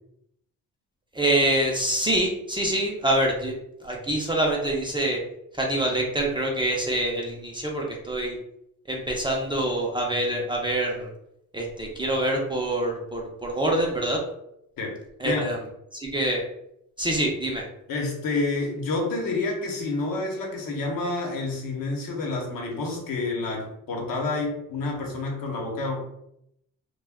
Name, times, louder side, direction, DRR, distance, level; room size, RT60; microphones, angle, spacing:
voice 1, 1.1-3.6 3.8-5.2 5.5-8.4 8.9-11.1 11.5-14.2 15.2-15.6 15.9-16.4 17.0-17.6, right 1 dB, 15° right, -1 dB, 0.4 m, -25 dB
voice 2, 17.9-26.0, left 3 dB, 70° left, 1 dB, 0.9 m, -29 dB
2.3 x 2.2 x 3.4 m, 0.77 s
cardioid pair, 115°, 35 cm